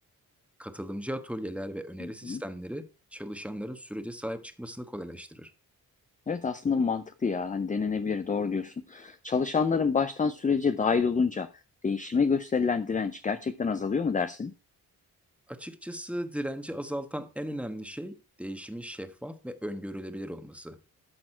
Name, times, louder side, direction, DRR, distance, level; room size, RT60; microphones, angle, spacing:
voice 1, 0.6-2.8 3.1-5.5 15.5-20.8, equal, 5° right, 1.2 m, -37 dB
voice 2, 2.0-2.4 6.3-11.5 11.8-14.5, left 5 dB, 20° left, 0.5 m, -27 dB
12.5 x 4.2 x 4.4 m
cardioid pair, 75°, 38 cm